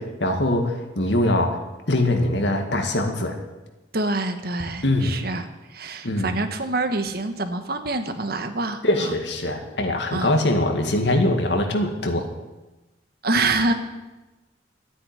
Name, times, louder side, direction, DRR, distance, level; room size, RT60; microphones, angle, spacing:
voice 1, 0.0-1.6 1.9-3.4 4.8-5.2 6.0-6.4 8.8-12.3, left 1 dB, 70° left, 4 dB, 2.0 m, -22 dB
voice 2, 3.9-9.1 10.1-10.3 13.2-13.7, right 2 dB, 55° right, 8 dB, 1.3 m, -26 dB
12.0 x 9.7 x 9.7 m, 1.1 s
head